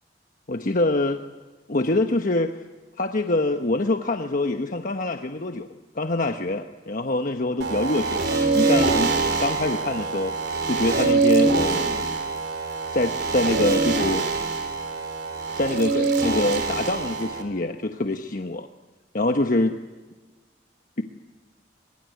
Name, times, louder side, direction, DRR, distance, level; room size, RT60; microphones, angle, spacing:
voice 1, 0.5-1.2 1.7-2.5 3.0-5.7 5.9-10.3 10.7-12.2 12.9-14.3 15.6-18.7 19.1-19.7, left 2 dB, 50° left, 5 dB, 1.2 m, -25 dB
sound 1, 7.6-17.4, right 3 dB, 65° right, 4.0 m, -24 dB
24.0 x 22.5 x 9.4 m, 1.2 s
head